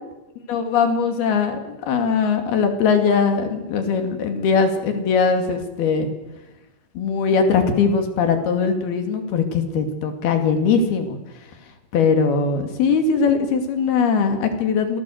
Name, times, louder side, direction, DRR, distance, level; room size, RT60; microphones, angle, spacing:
voice 1, 0.5-6.1 7.0-11.2 11.9-15.0, left 5 dB, 85° left, 6 dB, 4.4 m, -20 dB
27.0 x 18.5 x 7.9 m, 1.0 s
omnidirectional pair, 4.3 m